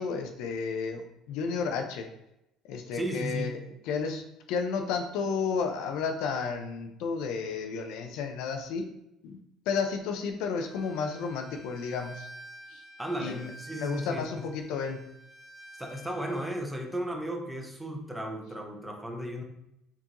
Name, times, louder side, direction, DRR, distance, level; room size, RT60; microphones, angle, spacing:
voice 1, 0.0-2.1 2.7-3.6 3.9-8.9 9.2-9.4 9.7-12.3 12.7-12.8 13.2-13.5 13.8-15.0, left 5 dB, 75° left, 5 dB, 0.5 m, -32 dB
voice 2, 2.9-3.6 13.0-14.5 15.8-19.4, equal, 5° right, 2 dB, 0.6 m, -35 dB
Bowed string instrument, 10.6-16.5, equal, 10° left, 0.9 m, -49 dB
4.5 x 2.5 x 2.9 m, 0.84 s
cardioid pair, 120°, 0 cm